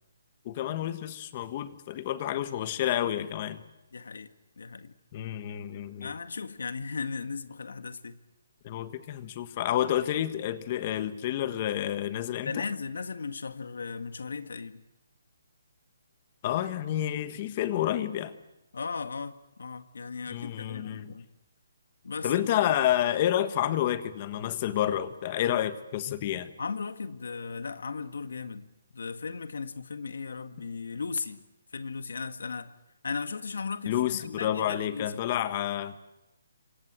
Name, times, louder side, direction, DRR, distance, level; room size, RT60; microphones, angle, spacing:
voice 1, 0.4-3.6 5.1-6.1 8.6-12.6 16.4-18.4 20.3-21.1 22.2-26.5 33.9-36.0, left 11 dB, 25° left, 12 dB, 1.5 m, -29 dB
voice 2, 3.9-4.3 4.6-4.9 6.0-8.2 12.4-14.8 18.7-21.3 22.0-22.3 22.7-22.8 26.6-31.4 31.7-32.7 33.0-35.5, left 5 dB, 80° left, 9 dB, 1.9 m, -36 dB
27.5 x 24.5 x 7.7 m, 0.94 s
hypercardioid pair, 175°, 0 cm